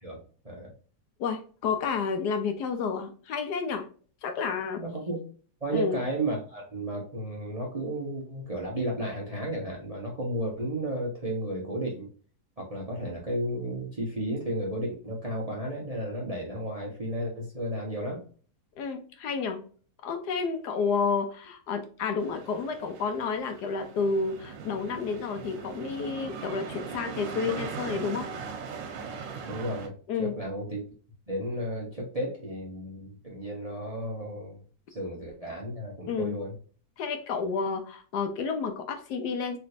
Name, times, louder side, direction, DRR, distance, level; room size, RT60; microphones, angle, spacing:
voice 1, 1.2-3.9 4.2-4.8 5.7-6.0 18.8-19.6 20.0-28.3 30.1-30.3 36.1-36.4 37.0-39.6, left 5 dB, 75° left, 6 dB, 1.1 m, -30 dB
voice 2, 4.8-5.2 5.6-12.1 12.6-18.2 29.4-30.9 31.3-34.6 34.9-36.5, right 1 dB, 35° right, -2 dB, 0.6 m, -33 dB
sound 1, 22.2-29.9, right 6 dB, 85° right, 1.4 m, -39 dB
3.3 x 2.9 x 2.6 m, 0.41 s
omnidirectional pair, 1.9 m